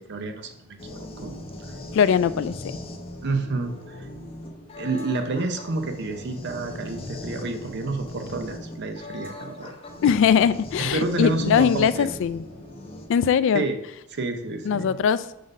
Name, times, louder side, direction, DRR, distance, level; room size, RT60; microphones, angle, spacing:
voice 1, 0.0-1.3 1.7-1.8 2.3-2.4 3.2-4.0 4.8-9.7 10.0-10.3 10.8-12.1 13.5-13.8 14.1-15.0, right 3 dB, 55° right, 6 dB, 0.6 m, -29 dB
sound 1, 0.8-13.1, left 1 dB, 30° left, 0.8 m, -39 dB
voice 2, 1.9-2.5 10.0-12.4 13.1-13.6 14.7-15.2, left 7 dB, 65° left, 16 dB, 0.3 m, -21 dB
5.1 x 4.0 x 5.3 m, 0.81 s
head